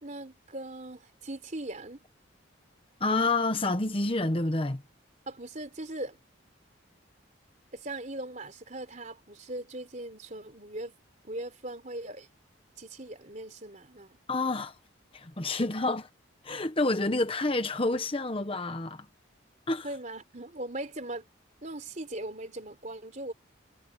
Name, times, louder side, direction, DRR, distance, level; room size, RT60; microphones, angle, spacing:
voice 1, 0.0-2.0 5.3-6.2 7.7-10.9 11.2-12.3 12.8-14.2 19.8-21.3 21.6-23.3, right 1 dB, 35° right, 3.9 m, -39 dB
voice 2, 3.0-4.8 14.3-14.7 15.1-16.1 16.4-19.1 19.7-19.9, left 2 dB, 25° left, 1.0 m, -28 dB
head